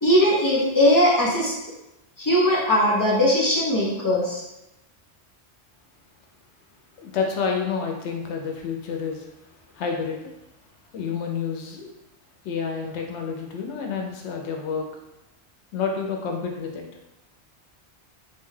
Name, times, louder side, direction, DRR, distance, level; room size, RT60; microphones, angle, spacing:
voice 1, 0.0-1.5 2.2-4.4, left 1 dB, 20° left, -6 dB, 0.6 m, -19 dB
voice 2, 7.0-9.5 9.7-10.3 10.9-11.9 12.4-14.9 15.7-16.8, left 5 dB, 85° left, 1 dB, 0.9 m, -29 dB
2.5 x 2.3 x 3.1 m, 0.95 s
omnidirectional pair, 1.1 m